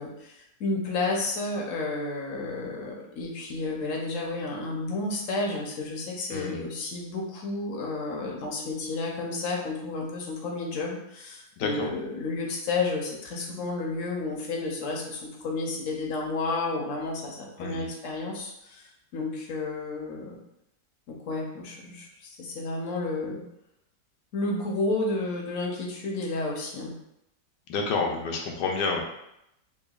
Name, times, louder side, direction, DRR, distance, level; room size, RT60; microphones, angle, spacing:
voice 1, 0.0-20.4 21.1-23.4 24.3-26.9, left 3 dB, 55° left, 0 dB, 0.9 m, -31 dB
voice 2, 6.3-6.6 11.6-11.9 17.6-17.9 27.7-29.0, left 4 dB, 75° left, 1 dB, 1.2 m, -29 dB
5.7 x 2.2 x 2.3 m, 0.81 s
omnidirectional pair, 1.9 m